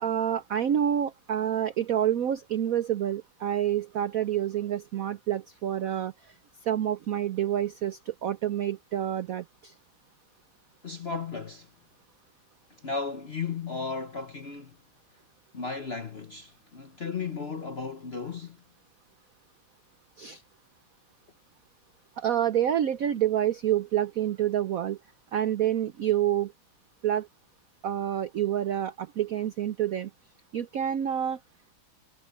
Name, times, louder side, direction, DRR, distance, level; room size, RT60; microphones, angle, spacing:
voice 1, 0.0-6.3 6.6-9.7 20.2-20.4 22.2-25.0 25.3-26.5 27.0-27.3 27.8-30.1 30.5-31.4, right 10 dB, 70° right, 0.8 m, -28 dB
voice 2, 10.8-11.7 12.8-14.8 15.5-18.6, left 5 dB, 50° left, 0.8 m, -35 dB
omnidirectional pair, 2.2 m